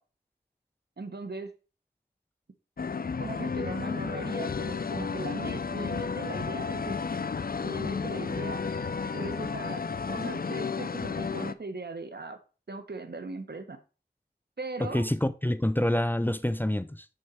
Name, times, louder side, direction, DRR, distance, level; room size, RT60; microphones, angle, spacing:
voice 1, 1.0-1.5 3.2-7.0 7.6-8.6 9.1-9.8 10.1-12.4 12.7-13.8 14.6-15.1, right 3 dB, 80° right, 1.1 m, -39 dB
sound 1, 2.8-11.5, left 5 dB, 60° left, 0.5 m, -32 dB
voice 2, 14.8-17.1, left 1 dB, 10° left, 0.5 m, -27 dB
6.4 x 4.4 x 5.6 m
wide cardioid pair, 55°, 17 cm